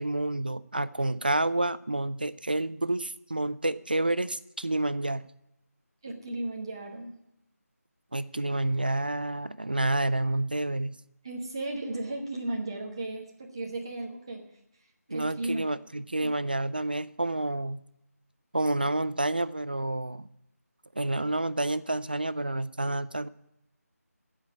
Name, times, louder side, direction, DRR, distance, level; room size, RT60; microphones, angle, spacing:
voice 1, 0.0-5.2 8.1-11.0 15.1-17.8 18.5-20.3 21.0-23.3, right 2 dB, 35° right, 0.3 m, -29 dB
voice 2, 6.0-7.1 11.2-14.4 15.1-15.6, right 2 dB, 15° right, 1.1 m, -35 dB
14.5 x 5.1 x 9.4 m
figure-of-eight pair, 180°, 9 cm